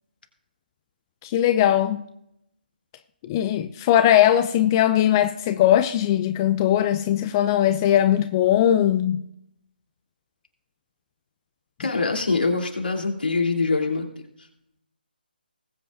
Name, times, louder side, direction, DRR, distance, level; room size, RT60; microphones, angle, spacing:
voice 1, 1.2-2.0 3.2-9.2, left 11 dB, 20° left, 0.5 m, -20 dB
voice 2, 11.8-14.1, left 3 dB, 75° left, 3.1 m, -24 dB
20.0 x 8.5 x 2.6 m
figure-of-eight pair, 150°, 5 cm